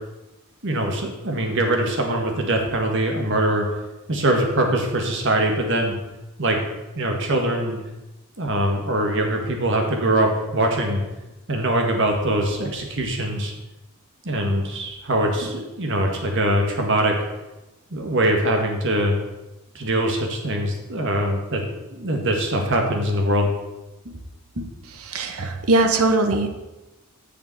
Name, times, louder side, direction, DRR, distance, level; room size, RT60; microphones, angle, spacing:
voice 1, 0.6-3.6 4.1-5.9 6.4-6.6 6.9-7.8 8.4-11.0 11.5-13.5 14.2-17.2 17.9-19.1 19.7-21.6 21.9-23.5 24.0-24.2 24.5-24.7, right 1 dB, 60° right, 2 dB, 1.8 m, -22 dB
voice 2, 25.0-26.5, right 2 dB, 80° right, 6 dB, 1.0 m, -20 dB
7.0 x 7.0 x 6.8 m, 1.0 s
head